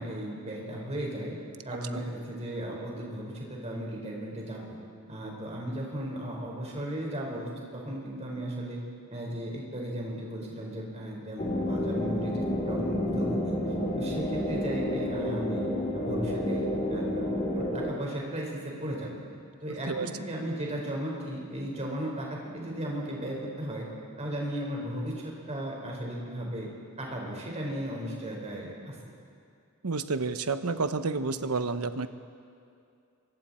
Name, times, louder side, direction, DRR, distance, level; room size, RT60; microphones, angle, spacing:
voice 1, 0.0-1.3 1.6-4.8 5.1-8.8 9.1-13.6 14.0-15.7 15.9-17.3 17.5-19.2 19.6-23.9 24.2-26.7 27.0-29.0, right 1 dB, 30° right, -2 dB, 4.8 m, -36 dB
sound 1, 11.4-17.9, left 1 dB, 35° left, 3.1 m, -30 dB
voice 2, 29.8-32.1, right 4 dB, 75° right, 10 dB, 0.9 m, -30 dB
27.0 x 23.5 x 4.4 m, 2.5 s
head